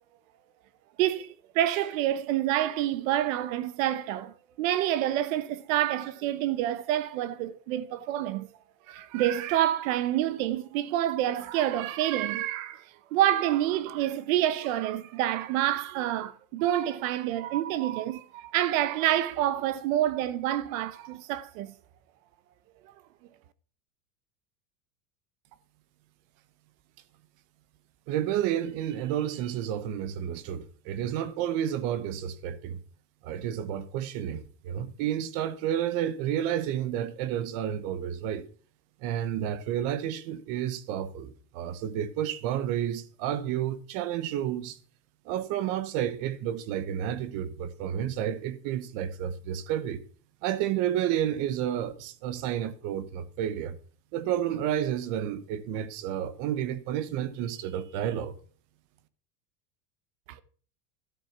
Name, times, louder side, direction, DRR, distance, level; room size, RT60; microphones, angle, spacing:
voice 1, 1.0-8.5 8.9-12.8 13.1-21.7 60.3-60.4, right 12 dB, 60° right, 1.1 m, -28 dB
voice 2, 28.1-32.8 33.2-38.5 39.0-44.8 45.2-50.0 50.4-53.8 54.1-58.3, right 10 dB, 40° right, 1.2 m, -31 dB
13.0 x 7.8 x 5.9 m
supercardioid pair, 170°, 46 cm